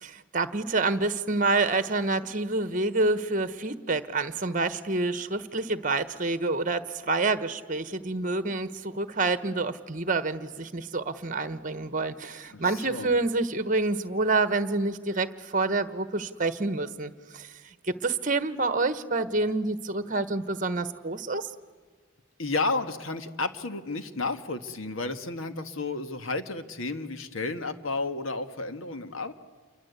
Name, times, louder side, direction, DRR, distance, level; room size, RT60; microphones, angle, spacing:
voice 1, 0.0-17.5 17.9-21.5, right 3 dB, 40° right, 12 dB, 1.2 m, -28 dB
voice 2, 12.5-13.1 22.4-29.3, left 3 dB, 80° left, 9 dB, 1.5 m, -32 dB
28.5 x 23.5 x 8.2 m, 1.5 s
head